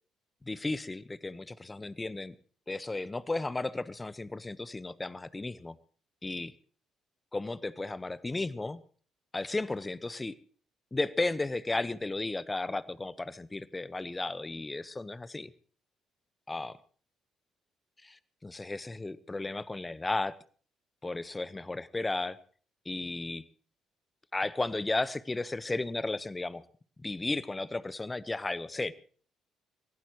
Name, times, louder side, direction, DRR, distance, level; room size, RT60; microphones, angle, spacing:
voice 1, 0.4-2.3 2.7-5.8 6.2-6.5 7.3-8.8 9.3-10.4 10.9-15.5 16.5-16.8 18.0-20.4 21.0-22.4 22.8-23.4 24.3-26.6 27.0-28.9, left 2 dB, 20° left, 17 dB, 1.1 m, -34 dB
24.0 x 17.0 x 3.1 m, 0.43 s
hypercardioid pair, 45°, 0 cm